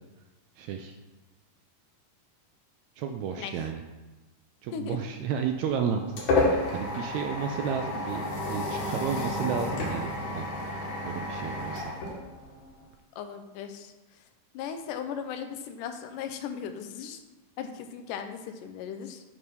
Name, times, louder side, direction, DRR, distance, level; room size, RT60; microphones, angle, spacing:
voice 1, 0.6-1.0 3.0-3.8 4.6-6.0 6.4-10.5 11.0-12.0, right 7 dB, 85° right, 4 dB, 1.6 m, -32 dB
sound 1, 5.4-12.9, left 2 dB, 65° left, 2.5 m, -31 dB
voice 2, 13.2-13.9 14.5-17.2 17.6-19.2, left 7 dB, 90° left, 7 dB, 2.2 m, -37 dB
9.3 x 3.4 x 5.4 m, 1.1 s
omnidirectional pair, 3.7 m